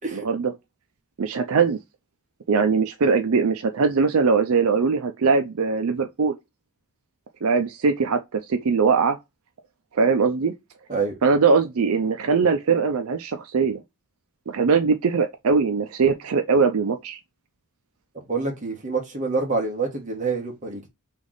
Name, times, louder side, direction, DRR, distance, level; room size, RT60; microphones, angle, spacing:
voice 1, 0.1-0.5 1.2-1.8 2.5-6.4 7.4-9.2 9.9-10.5 11.2-13.8 14.5-17.2, right 5 dB, 70° right, 0.5 m, -21 dB
voice 2, 18.1-20.9, right 4 dB, 35° right, 1.4 m, -27 dB
3.4 x 3.1 x 3.8 m
head